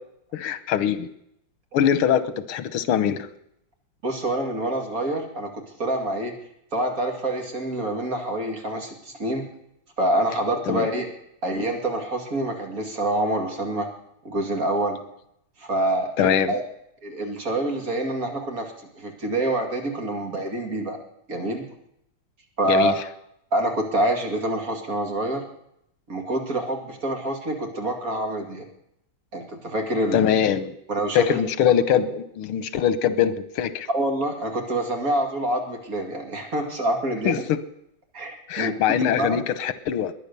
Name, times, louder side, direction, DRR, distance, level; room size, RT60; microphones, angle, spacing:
voice 1, 0.3-1.1 1.7-3.2 10.7-10.9 16.2-16.5 22.7-22.9 30.1-30.7 31.1-33.9 37.3-37.6 38.5-40.1, left 9 dB, 85° left, 13 dB, 1.8 m, -22 dB
voice 2, 4.0-6.3 6.7-9.5 10.0-11.1 11.4-13.9 14.2-15.0 15.6-16.6 17.0-21.0 21.3-21.6 22.6-22.9 23.5-25.4 26.1-28.7 29.3-30.4 30.9-31.4 31.9-32.0 33.9-37.4 38.1-38.7 39.0-39.4, right 1 dB, 40° right, 3 dB, 2.7 m, -26 dB
21.5 x 9.9 x 6.8 m, 0.77 s
omnidirectional pair, 2.3 m